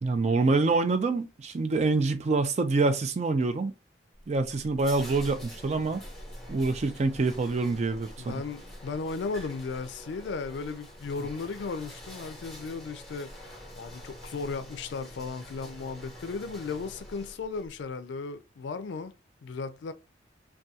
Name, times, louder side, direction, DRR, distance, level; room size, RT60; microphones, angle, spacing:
voice 1, 0.0-3.7 4.3-6.0 6.5-8.4, right 3 dB, 40° right, 0.4 m, -26 dB
sound 1, 4.2-17.7, equal, ahead, 0.9 m, -46 dB
voice 2, 8.2-19.1 19.4-19.9, left 4 dB, 75° left, 0.4 m, -36 dB
2.7 x 2.2 x 2.3 m
head